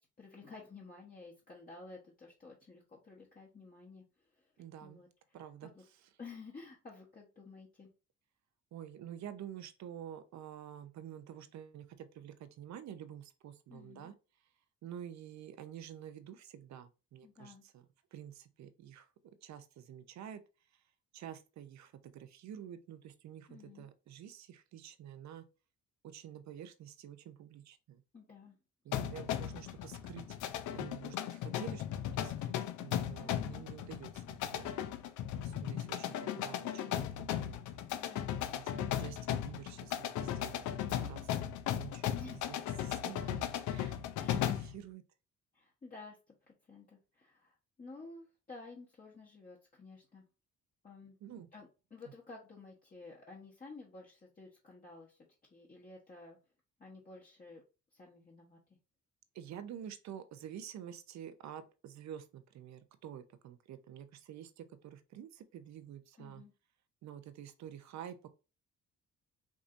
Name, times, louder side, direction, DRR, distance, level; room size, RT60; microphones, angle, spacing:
voice 1, 0.0-4.5 4.8-5.8 6.2-7.9 13.7-14.1 17.2-17.6 23.5-23.9 28.1-28.6 28.9-29.5 33.2-33.7 37.9-38.4 42.1-42.5 44.2-44.5 45.5-50.2 50.8-51.2 51.5-55.2 55.5-56.4 56.8-57.6 57.9-58.6 66.2-66.5, left 3 dB, 30° left, 1.1 m, -53 dB
voice 2, 4.6-5.0 5.3-5.7 8.7-14.1 14.8-17.9 18.1-19.1 19.4-20.4 21.1-25.5 26.0-28.0 28.8-30.4 30.7-31.8 32.2-32.5 32.8-34.7 35.4-37.6 38.5-40.7 41.0-45.0 51.2-51.5 59.3-66.4 67.0-68.3, right 10 dB, 65° right, 0.6 m, -49 dB
sound 1, 28.9-44.8, left 10 dB, 75° left, 0.5 m, -37 dB
4.7 x 2.6 x 2.5 m
cardioid pair, 90°, 30 cm